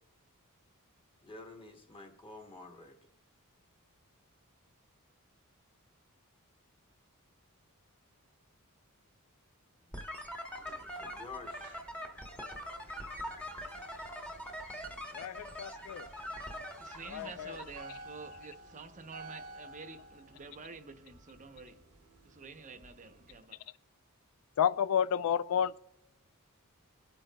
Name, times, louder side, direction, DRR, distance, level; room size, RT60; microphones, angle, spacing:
voice 1, 1.2-3.0 9.9-10.1 10.8-11.8, left 3 dB, 25° left, 1.2 m, -49 dB
sound 1, 9.9-17.8, equal, 5° left, 1.0 m, -43 dB
sound 2, 10.3-23.4, right 2 dB, 85° right, 1.1 m, -55 dB
voice 2, 15.1-16.1 17.1-17.6 24.6-25.8, left 8 dB, 70° left, 0.3 m, -31 dB
voice 3, 16.8-21.8 22.2-23.6, right 4 dB, 35° right, 0.7 m, -49 dB
24.5 x 8.8 x 2.2 m
head